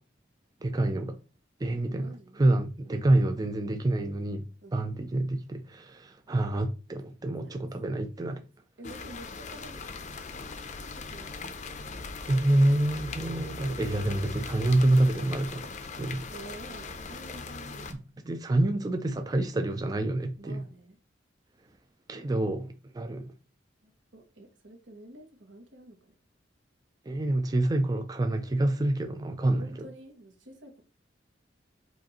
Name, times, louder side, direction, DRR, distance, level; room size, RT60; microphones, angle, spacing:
voice 1, 0.6-1.2 1.6-4.5 4.7-8.4 12.3-16.2 17.9-18.0 18.2-20.6 22.1-23.3 27.1-29.7, right 1 dB, 20° right, 0.3 m, -27 dB
voice 2, 1.9-2.4 4.6-4.8 7.4-7.6 8.8-10.2 11.1-11.5 16.3-18.0 20.4-21.0 23.8-26.0 29.5-30.8, right 1 dB, 80° right, 1.3 m, -49 dB
sound 1, 8.8-17.9, left 4 dB, 40° left, 0.5 m, -40 dB
5.0 x 2.5 x 4.1 m
head